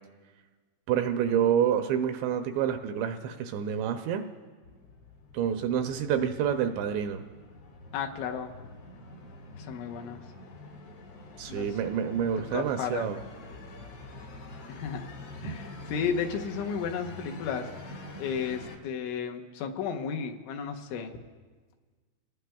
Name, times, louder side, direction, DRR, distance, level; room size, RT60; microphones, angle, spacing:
voice 1, 0.9-4.2 5.3-7.2 11.4-13.2 15.4-15.6, right 8 dB, 80° right, 7 dB, 2.6 m, -28 dB
sound 1, 4.6-18.8, left 2 dB, 55° left, 1.6 m, -46 dB
voice 2, 7.9-8.5 9.6-10.2 11.5-11.7 12.5-13.1 14.7-15.0 15.4-17.7 18.2-21.1, left 7 dB, 80° left, 3 dB, 3.3 m, -33 dB
29.0 x 19.0 x 2.3 m, 1.4 s
omnidirectional pair, 5.4 m